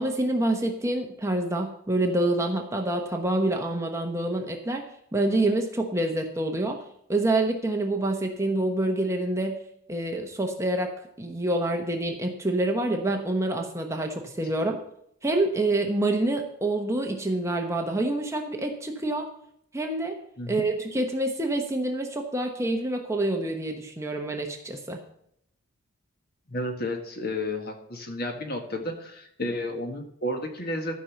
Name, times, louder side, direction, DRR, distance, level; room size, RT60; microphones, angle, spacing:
voice 1, 0.0-6.8 7.1-9.6 9.9-10.9 11.2-14.8 15.2-19.3 19.7-20.2 20.5-25.0, right 2 dB, 15° right, 3 dB, 1.0 m, -27 dB
voice 2, 26.5-31.0, left 1 dB, 45° left, 4 dB, 1.7 m, -32 dB
13.5 x 5.5 x 7.2 m, 0.71 s
head